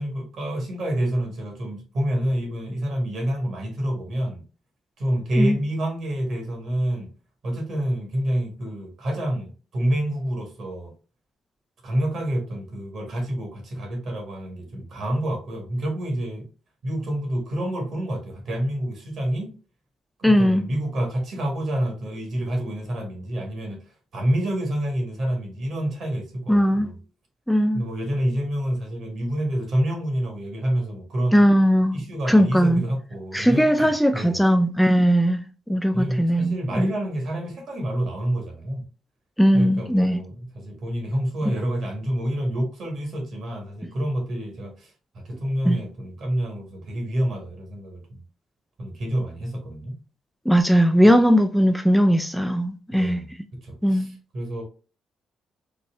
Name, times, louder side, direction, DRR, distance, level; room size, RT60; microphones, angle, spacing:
voice 1, 0.0-4.4 5.0-7.1 7.4-10.9 11.8-16.5 16.8-19.5 20.2-23.8 24.1-27.0 27.7-31.4 31.9-34.4 35.9-38.8 39.5-44.9 45.2-48.2 48.8-50.0 52.9-53.3 53.6-54.6, right 1 dB, 60° right, 1.5 m, -28 dB
voice 2, 20.2-20.6 26.5-26.9 27.5-27.8 31.3-32.0 32.3-32.8 33.3-35.4 35.7-36.9 39.4-40.2 45.7-45.8 50.5-53.2 53.8-54.1, equal, ahead, 0.3 m, -19 dB
4.1 x 2.1 x 3.4 m
cardioid pair, 90°, 0 cm